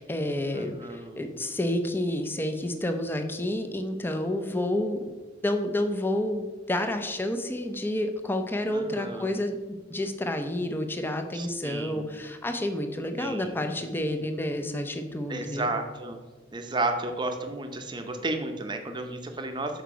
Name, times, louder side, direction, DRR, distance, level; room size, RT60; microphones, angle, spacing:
voice 1, 0.0-5.1 5.4-15.7, left 1 dB, 10° left, 6 dB, 0.6 m, -29 dB
voice 2, 0.5-1.2 8.7-9.3 11.3-12.0 13.2-13.6 15.3-16.2 16.5-19.8, right 2 dB, 25° right, 5 dB, 0.7 m, -32 dB
6.6 x 4.6 x 5.0 m, 1.3 s
head